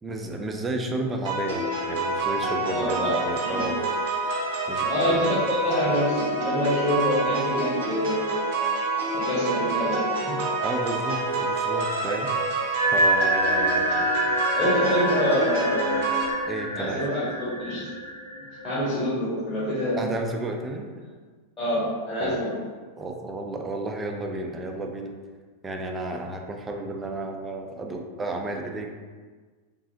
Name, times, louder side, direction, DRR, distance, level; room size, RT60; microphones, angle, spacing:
voice 1, 0.0-3.9 4.7-5.4 10.6-12.5 12.9-14.1 16.5-17.0 20.0-20.9 22.2-22.4 23.0-25.1 25.6-28.9, right 2 dB, 15° right, 2 dB, 0.4 m, -32 dB
sound 1, 1.2-16.2, right 2 dB, 50° right, 0.7 m, -27 dB
voice 2, 2.7-3.2 3.4-3.7 4.9-8.4 9.1-10.4 14.6-15.9 16.7-17.9 18.6-20.1 21.6-22.5, equal, 25° left, -12 dB, 1.1 m, -26 dB
sound 2, 10.4-18.8, right 1 dB, 85° right, 0.4 m, -28 dB
3.1 x 2.7 x 2.6 m, 1.4 s
figure-of-eight pair, 90°, 0 cm